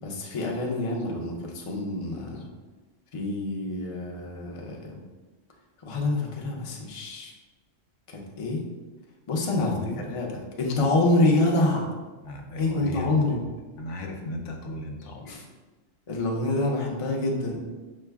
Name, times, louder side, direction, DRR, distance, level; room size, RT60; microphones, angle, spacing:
voice 1, 0.0-2.5 3.1-5.0 5.8-7.3 8.1-8.6 9.3-9.7 10.1-11.9 12.6-13.4 15.2-15.4 16.1-17.6, left 2 dB, 35° left, -1 dB, 0.5 m, -26 dB
voice 2, 9.6-10.0 12.2-13.5 13.8-15.3, left 1 dB, 75° left, 2 dB, 0.9 m, -36 dB
5.5 x 2.2 x 3.4 m, 1.2 s
omnidirectional pair, 1.3 m